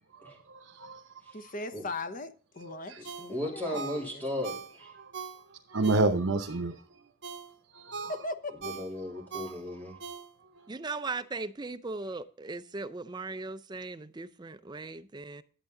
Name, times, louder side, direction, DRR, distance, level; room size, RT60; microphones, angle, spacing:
voice 1, 0.5-1.0 5.7-6.8 7.7-8.3, right 3 dB, 80° right, 0.9 m, -28 dB
voice 2, 1.3-4.2 8.1-8.5, left 2 dB, 45° left, 0.9 m, -39 dB
Ringtone, 3.0-6.5 6.9-10.7 11.1-11.2, right 5 dB, 60° right, 1.3 m, -42 dB
voice 3, 3.3-4.9 8.6-9.9, left 1 dB, 10° left, 3.2 m, -36 dB
voice 4, 10.7-15.4, right 3 dB, 20° right, 0.5 m, -38 dB
11.0 x 8.1 x 3.8 m
head